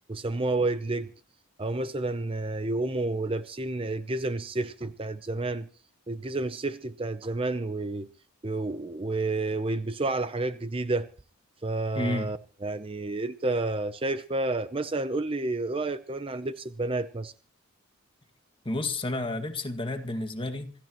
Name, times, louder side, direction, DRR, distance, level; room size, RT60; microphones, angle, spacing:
voice 1, 0.1-1.1 1.6-5.7 6.1-8.1 8.4-11.1 11.6-17.3, right 2 dB, 25° right, 0.7 m, -30 dB
voice 2, 12.0-12.3 18.7-20.7, left 2 dB, 25° left, 1.9 m, -31 dB
26.5 x 15.0 x 3.0 m
head